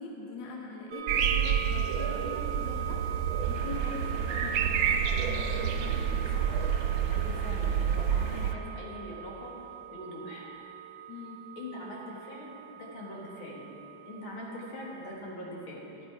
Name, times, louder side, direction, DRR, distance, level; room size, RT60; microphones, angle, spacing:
voice 1, 0.0-3.0 3.4-6.5 11.1-11.5, left 4 dB, 65° left, 0 dB, 1.5 m, -42 dB
sound 1, 0.9-15.2, right 11 dB, 65° right, 1.2 m, -42 dB
sound 2, 1.1-8.5, right 8 dB, 85° right, 1.4 m, -29 dB
sound 3, 3.4-8.4, right 1 dB, 50° right, 2.3 m, -44 dB
voice 2, 7.1-9.5 9.9-10.5 11.6-13.6 14.1-15.9, left 1 dB, 85° left, -3 dB, 2.5 m, -42 dB
12.5 x 8.0 x 4.8 m, 3.0 s
omnidirectional pair, 2.2 m